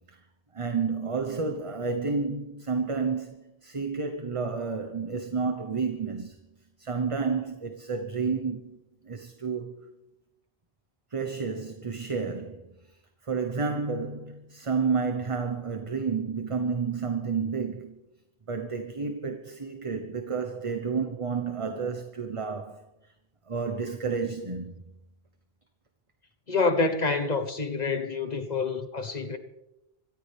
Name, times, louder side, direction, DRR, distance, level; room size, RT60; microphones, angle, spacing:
voice 1, 0.5-6.4 6.8-8.8 9.0-9.8 11.1-12.7 13.2-18.0 18.5-22.8 23.5-24.7 27.6-27.7, right 5 dB, 30° right, 1.0 m, -30 dB
voice 2, 26.5-29.4, left 3 dB, 40° left, 1.3 m, -27 dB
25.5 x 14.5 x 3.4 m
omnidirectional pair, 1.1 m